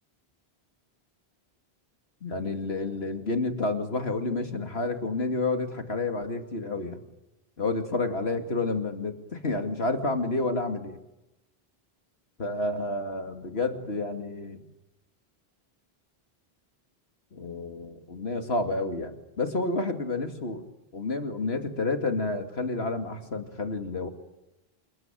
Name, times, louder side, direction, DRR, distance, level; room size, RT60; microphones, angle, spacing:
voice 1, 2.2-7.0 7.6-11.0 12.4-14.6 17.3-20.6 20.9-24.1, left 3 dB, 75° left, 6 dB, 2.6 m, -30 dB
28.0 x 20.5 x 9.1 m, 0.97 s
omnidirectional pair, 1.1 m